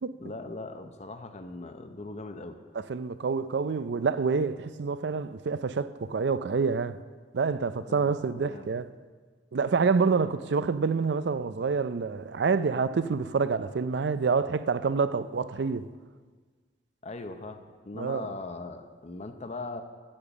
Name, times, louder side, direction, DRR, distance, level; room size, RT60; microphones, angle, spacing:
voice 1, 0.2-2.6 7.9-8.7 17.0-19.8, left 2 dB, 40° left, 0.7 m, -40 dB
voice 2, 2.7-7.0 7.3-8.9 9.5-15.9 17.9-18.3, right 5 dB, 65° right, 0.4 m, -27 dB
8.7 x 8.5 x 7.1 m
head